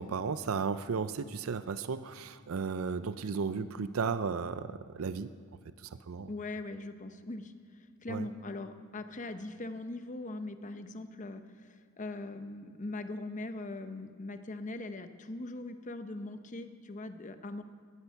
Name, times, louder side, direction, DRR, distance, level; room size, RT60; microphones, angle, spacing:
voice 1, 0.0-5.3 5.8-6.3 8.1-8.3, right 5 dB, 85° right, 13 dB, 0.5 m, -34 dB
voice 2, 6.3-7.5 8.0-17.6, left 2 dB, 35° left, 9 dB, 0.8 m, -41 dB
15.5 x 12.5 x 5.8 m, 2.1 s
head